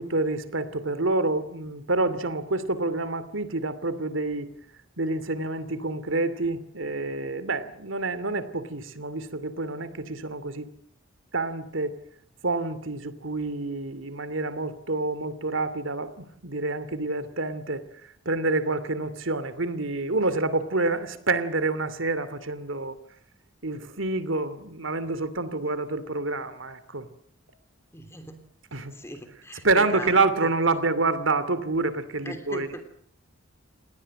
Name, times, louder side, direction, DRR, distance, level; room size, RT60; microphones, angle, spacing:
voice 1, 0.0-4.5 5.0-10.7 11.3-12.0 12.4-17.8 18.2-23.0 23.6-27.1 28.7-28.9 29.6-32.7, right 3 dB, 75° right, 14 dB, 2.7 m, -27 dB
voice 2, 27.9-28.5 28.9-30.7 32.2-32.8, left 1 dB, 15° left, 7 dB, 3.0 m, -40 dB
29.0 x 20.0 x 7.7 m, 0.66 s
head